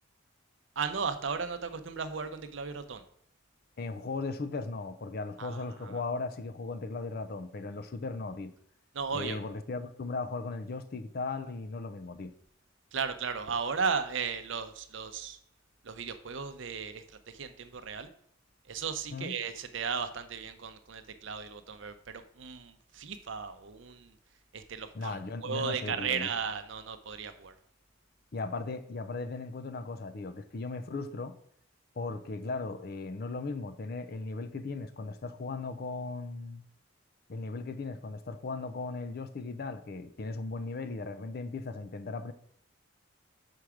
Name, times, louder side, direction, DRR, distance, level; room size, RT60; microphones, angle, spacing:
voice 1, 0.8-3.0 5.4-6.0 8.9-9.4 12.9-15.4 15.8-18.1 18.6-24.1 24.5-27.6, right 6 dB, 60° right, 0.6 m, -35 dB
voice 2, 3.8-8.5 9.1-12.3 19.1-19.3 24.9-26.3 28.3-31.4 32.0-36.6 37.3-42.3, left 3 dB, 50° left, 0.5 m, -37 dB
5.9 x 4.7 x 4.9 m
head